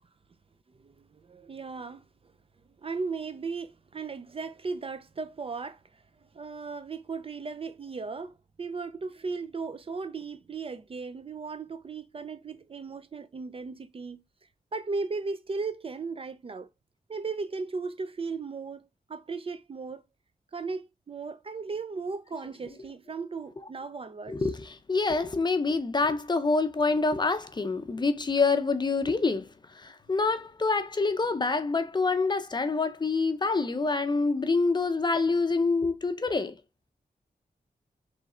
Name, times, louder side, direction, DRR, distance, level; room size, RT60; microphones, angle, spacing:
voice 1, 0.7-2.0 2.8-6.0 6.3-14.2 14.7-16.7 17.1-20.0 20.5-24.6, right 4 dB, 40° right, 0.4 m, -36 dB
voice 2, 24.3-36.6, left 3 dB, 30° left, 0.5 m, -26 dB
3.6 x 3.1 x 4.1 m
wide cardioid pair, 150°, 15 cm